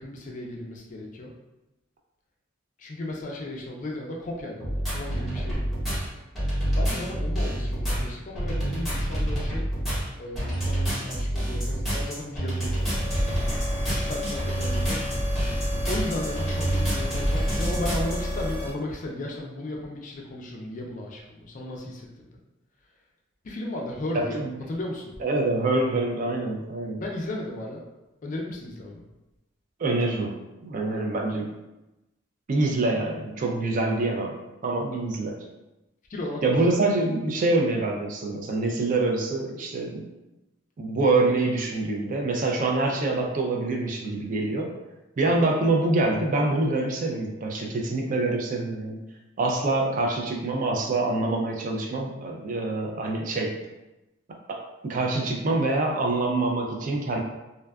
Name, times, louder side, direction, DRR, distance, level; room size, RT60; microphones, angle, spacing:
voice 1, 0.0-1.3 2.8-5.7 6.7-9.7 10.2-15.0 15.9-22.3 23.4-24.4 24.7-25.1 26.9-27.8 28.2-29.0 36.1-36.5, left 1 dB, 40° left, -1 dB, 0.4 m, -35 dB
sound 1, 4.6-18.2, right 1 dB, ahead, 0.8 m, -27 dB
sound 2, 12.7-18.7, left 1 dB, 70° right, 1.3 m, -32 dB
voice 2, 24.1-24.5 25.2-27.0 29.8-30.3 30.6-31.5 32.5-34.4 34.6-35.4 36.4-40.0 40.8-44.7 45.2-49.0 49.4-53.5 54.5-57.2, right 2 dB, 40° right, 1 dB, 0.3 m, -25 dB
2.5 x 2.2 x 2.2 m, 0.99 s
head